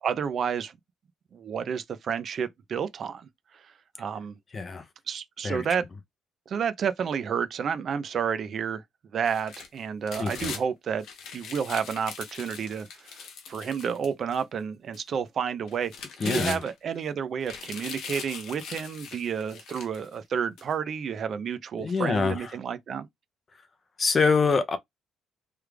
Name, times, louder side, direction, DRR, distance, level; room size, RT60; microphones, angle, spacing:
voice 1, 0.0-0.8 1.3-3.3 3.5-3.7 4.0-4.4 5.1-5.9 6.5-8.8 9.1-11.0 11.3-15.9 16.2-23.1, right 7 dB, 40° right, 0.4 m, -30 dB
voice 2, 4.5-4.8 5.4-5.6 10.2-10.5 16.2-16.6 21.8-22.5 24.0-24.8, left 4 dB, 25° left, 0.5 m, -25 dB
sound 1, 9.3-10.6 11.0-14.4 14.9-15.0 15.7-17.0 17.4-20.1 20.6-20.7, left 6 dB, 65° left, 0.9 m, -40 dB
3.2 x 2.4 x 3.3 m
cardioid pair, 155°, 0 cm